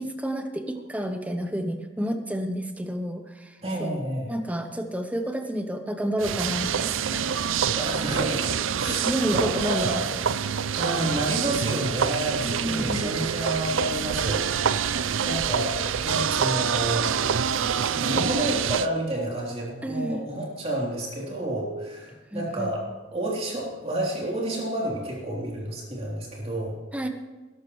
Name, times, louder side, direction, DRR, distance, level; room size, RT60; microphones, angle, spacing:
voice 1, 0.0-3.5 3.8-4.0 4.3-7.3 8.9-10.1 12.4-13.1 19.8-20.2 22.3-22.7 26.9-27.1, equal, 10° right, 6 dB, 0.9 m, -30 dB
voice 2, 3.6-4.3 7.7-10.1 10.7-17.1 17.9-26.8, right 1 dB, 30° right, -4 dB, 3.4 m, -30 dB
sound 1, 6.2-18.9, right 7 dB, 85° right, 0.5 m, -26 dB
20.0 x 12.5 x 3.2 m, 1.2 s
head